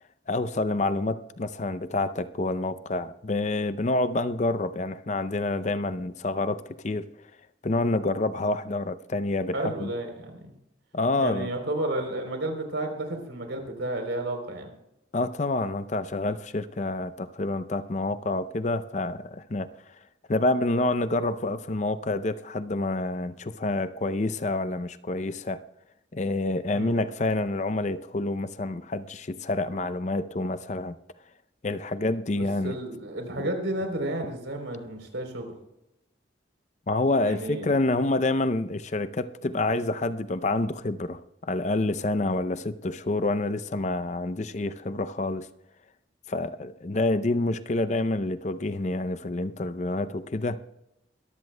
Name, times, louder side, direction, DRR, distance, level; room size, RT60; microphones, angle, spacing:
voice 1, 0.3-7.0 7.6-9.9 10.9-11.5 15.1-20.0 20.3-25.6 26.1-31.0 31.6-32.8 36.9-45.5 46.3-50.6, left 2 dB, 40° left, 0.5 m, -28 dB
voice 2, 9.5-10.5 11.2-14.7 26.7-26.9 32.6-35.5 37.2-37.7, right 1 dB, 90° right, 3.5 m, -32 dB
23.0 x 14.5 x 2.2 m
head